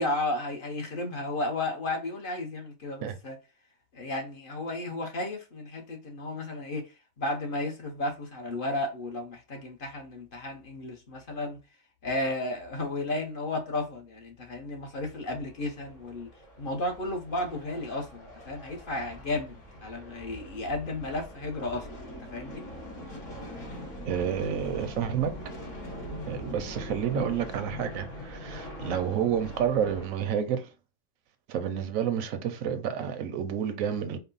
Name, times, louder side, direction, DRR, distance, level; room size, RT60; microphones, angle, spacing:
voice 1, 0.0-3.4 3.9-6.9 7.2-11.6 12.0-16.3 16.6-22.0 22.3-22.6, left 2 dB, 50° left, 0.8 m, -33 dB
sound 1, 15.4-30.1, equal, 65° left, 2.1 m, -42 dB
voice 2, 24.0-25.3 26.3-30.7 31.5-34.2, right 8 dB, 90° right, 1.0 m, -29 dB
4.4 x 2.0 x 3.9 m
omnidirectional pair, 1.4 m